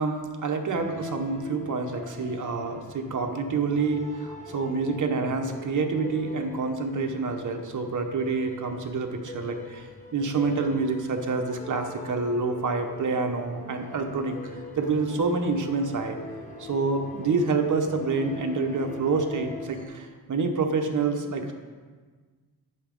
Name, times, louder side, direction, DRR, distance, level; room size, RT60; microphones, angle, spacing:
voice 1, 0.0-16.2 16.6-21.5, right 4 dB, 50° right, 4 dB, 1.0 m, -27 dB
sound 1, 0.7-19.9, left 3 dB, 20° left, 1.3 m, -42 dB
9.4 x 5.5 x 5.3 m, 1.5 s
wide cardioid pair, 130°, 38 cm